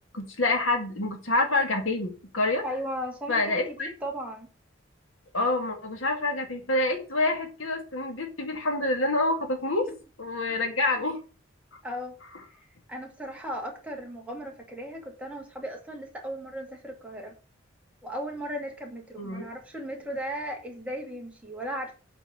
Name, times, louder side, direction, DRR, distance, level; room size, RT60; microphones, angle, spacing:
voice 1, 0.1-2.6 3.3-3.9 5.3-9.9 10.2-11.2 19.2-19.5, left 2 dB, 70° left, 4 dB, 2.0 m, -27 dB
voice 2, 2.6-4.5 11.0-11.1 11.8-12.2 12.9-17.3 18.0-22.0, equal, 5° right, 0 dB, 2.3 m, -36 dB
8.3 x 4.6 x 6.9 m, 0.35 s
head